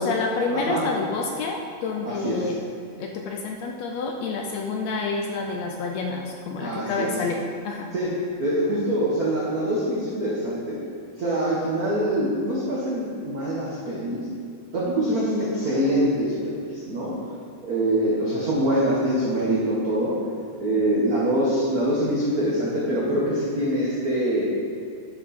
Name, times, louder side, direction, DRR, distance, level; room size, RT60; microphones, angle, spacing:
voice 1, 0.0-2.6 3.0-7.9, left 4 dB, 75° left, 1 dB, 1.6 m, -28 dB
voice 2, 0.5-0.9 2.0-2.4 6.6-7.1 7.9-8.1 8.4-10.8 11.2-14.3 14.7-17.1 17.6-20.2 20.6-24.5, right 1 dB, 70° right, -6 dB, 0.8 m, -24 dB
10.0 x 5.8 x 4.2 m, 2.2 s
omnidirectional pair, 3.5 m